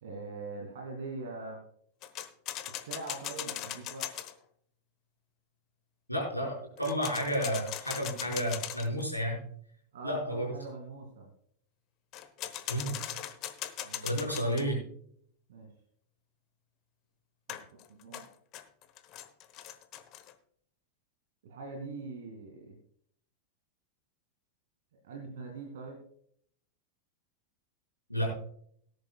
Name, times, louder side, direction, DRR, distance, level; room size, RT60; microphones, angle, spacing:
voice 1, 0.0-1.6 2.8-4.1 9.9-11.3 13.8-14.1 15.5-15.7 17.5-17.6 17.9-18.3 21.4-22.8 25.0-26.0, right 3 dB, 60° right, 1 dB, 2.4 m, -42 dB
Locked Metal Door Handle Interior Room, 2.0-4.3 6.8-9.0 12.1-14.6 17.5-20.3, left 12 dB, 35° left, 1.1 m, -40 dB
voice 2, 6.1-9.4 10.0-10.5 12.7-13.0 14.0-14.8 28.1-28.3, equal, 90° right, -1 dB, 5.1 m, -31 dB
18.0 x 10.5 x 2.3 m, 0.62 s
figure-of-eight pair, 90°, 0 cm